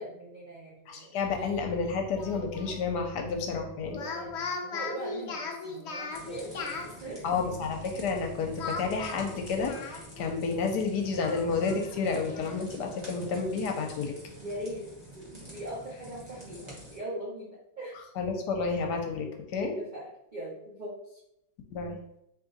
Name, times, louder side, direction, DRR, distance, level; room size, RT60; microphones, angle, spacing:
voice 1, 0.0-1.1 3.9-7.7 14.4-14.9 15.2-17.9 19.8-20.0 20.3-21.2, right 1 dB, 50° right, -7 dB, 0.5 m, -41 dB
voice 2, 0.9-4.0 7.2-14.1 18.2-19.8 21.7-22.0, left 4 dB, 75° left, 3 dB, 1.1 m, -30 dB
Speech, 2.2-2.8 3.8-6.9 8.6-10.3 10.6-10.7 11.2-12.6, left 4 dB, 90° left, 0.5 m, -38 dB
sound 1, 6.1-17.0, right 1 dB, 20° right, 1.1 m, -48 dB
3.6 x 2.9 x 3.9 m, 0.81 s
omnidirectional pair, 2.0 m